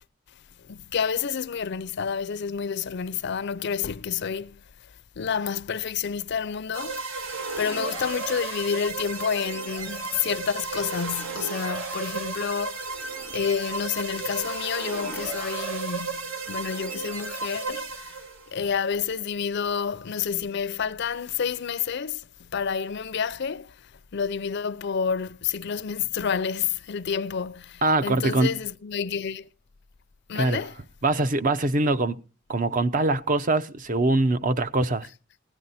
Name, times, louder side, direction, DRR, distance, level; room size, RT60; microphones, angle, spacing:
voice 1, 0.6-4.6 5.2-7.1 7.6-18.2 18.5-23.7 24.1-29.5 30.3-30.8, left 6 dB, 60° left, 0.5 m, -29 dB
sound 1, 6.7-18.5, right 4 dB, 85° right, 2.2 m, -34 dB
voice 2, 27.8-28.5 30.3-30.6 31.0-32.2 32.5-35.1, right 2 dB, 40° right, 0.7 m, -23 dB
16.5 x 10.5 x 4.2 m
head